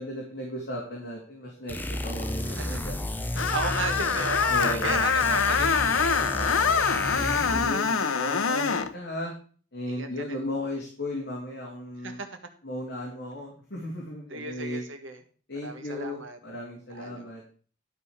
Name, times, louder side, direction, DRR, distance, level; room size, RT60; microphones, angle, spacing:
voice 1, 0.0-3.0 3.3-3.4 4.5-5.0 7.1-9.3 9.7-12.2 12.6-14.8 15.5-17.4, left 1 dB, 55° left, -3 dB, 3.0 m, -35 dB
sound 1, 1.7-7.8, left 1 dB, 10° left, 0.6 m, -33 dB
voice 2, 2.5-2.9 3.5-6.9 7.9-8.1 8.4-8.8 9.9-10.4 12.0-12.3 14.3-15.2 15.6-16.4 16.9-17.3, right 3 dB, 70° right, 6 dB, 1.5 m, -36 dB
Screech, 3.4-8.9, left 6 dB, 90° left, 0.8 m, -25 dB
12.0 x 5.3 x 6.4 m, 0.42 s
head